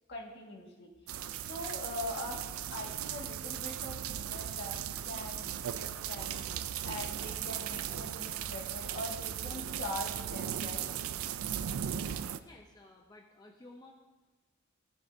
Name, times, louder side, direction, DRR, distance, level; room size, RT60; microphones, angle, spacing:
voice 1, 0.1-6.4 6.8-10.9, left 1 dB, 55° left, -1 dB, 1.8 m, -42 dB
sound 1, 1.1-12.4, right 10 dB, 85° right, 0.4 m, -37 dB
voice 2, 12.1-13.9, left 2 dB, 20° left, 1 dB, 0.6 m, -55 dB
17.5 x 7.3 x 2.7 m, 1.2 s
head